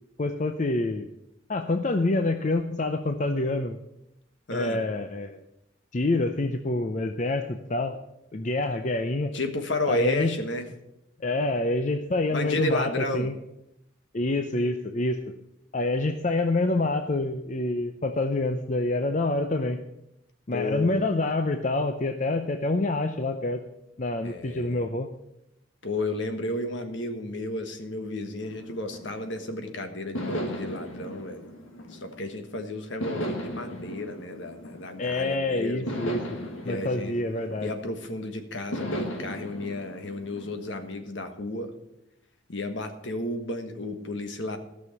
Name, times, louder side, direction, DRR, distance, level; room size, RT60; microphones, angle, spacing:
voice 1, 0.2-1.1 1.5-3.8 4.5-5.4 5.9-8.0 8.3-9.3 9.9-10.3 11.2-13.3 14.1-15.2 15.7-19.8 20.5-23.6 24.0-25.1 35.0-36.2 36.6-37.7, left 2 dB, 35° left, 6 dB, 0.6 m, -27 dB
voice 2, 4.5-4.8 9.3-10.7 12.3-13.3 20.5-21.0 24.2-24.8 25.8-31.5 31.9-35.9 36.6-37.2 37.6-41.7 42.5-44.6, left 2 dB, 65° left, 6 dB, 1.4 m, -32 dB
sound 1, 28.4-29.5 30.1-32.4 33.0-35.3 35.9-38.1 38.7-40.9, equal, 85° left, 1.9 m, -36 dB
14.0 x 6.3 x 7.1 m, 0.85 s
head